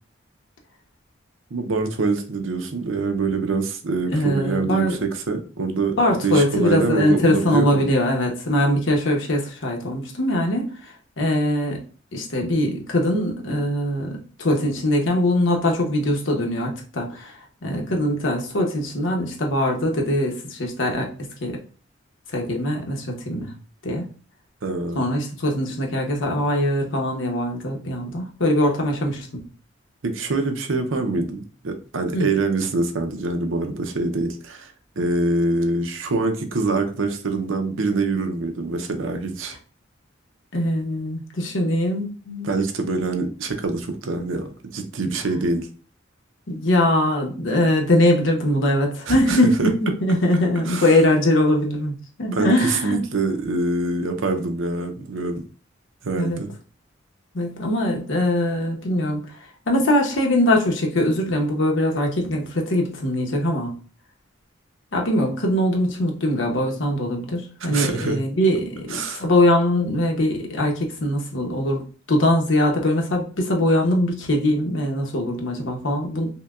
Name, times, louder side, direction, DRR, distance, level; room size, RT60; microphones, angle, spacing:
voice 1, 1.5-7.9 24.6-25.0 30.0-39.6 42.4-45.7 49.1-49.7 50.7-50.9 52.3-55.4 56.0-56.5 67.6-68.2 68.9-69.3, right 3 dB, 85° right, 6 dB, 0.7 m, -25 dB
voice 2, 4.1-5.0 6.0-10.7 11.2-11.8 12.1-17.3 17.6-21.1 21.4-21.6 22.3-23.5 23.8-24.1 24.9-29.3 32.1-32.3 40.5-42.5 46.5-53.0 56.2-56.4 57.3-59.2 59.7-63.7 64.9-76.3, left 1 dB, 75° left, 1 dB, 0.9 m, -22 dB
5.6 x 2.2 x 2.4 m, 0.38 s
head